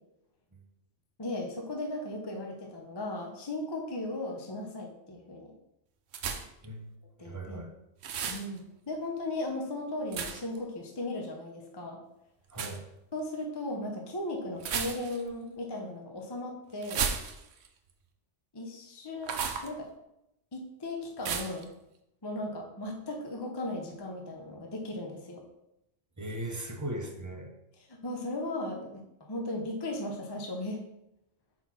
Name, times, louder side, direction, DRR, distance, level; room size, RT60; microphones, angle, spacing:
voice 1, 1.2-5.5 7.2-7.6 8.3-12.0 13.1-17.1 18.5-19.9 20.5-21.7 22.2-25.4 27.8-30.8, left 1 dB, 25° left, 1 dB, 0.6 m, -37 dB
sound 1, 6.1-6.7 8.0-8.5 10.1-10.6 12.5-12.8 14.6-15.3 16.8-17.7 19.2-19.7 21.2-21.6, right 6 dB, 65° right, 0.9 m, -33 dB
voice 2, 7.2-7.7 12.5-12.8 26.2-27.5, right 1 dB, 20° right, 2 dB, 0.6 m, -38 dB
4.7 x 4.3 x 5.7 m, 0.86 s
omnidirectional pair, 1.3 m